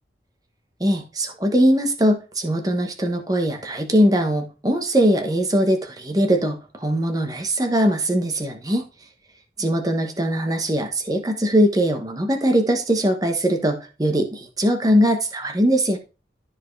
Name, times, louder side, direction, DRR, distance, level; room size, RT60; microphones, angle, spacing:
voice 1, 0.8-8.9 9.6-16.0, equal, 20° right, 1.1 m, -21 dB
13.0 x 4.6 x 3.3 m
head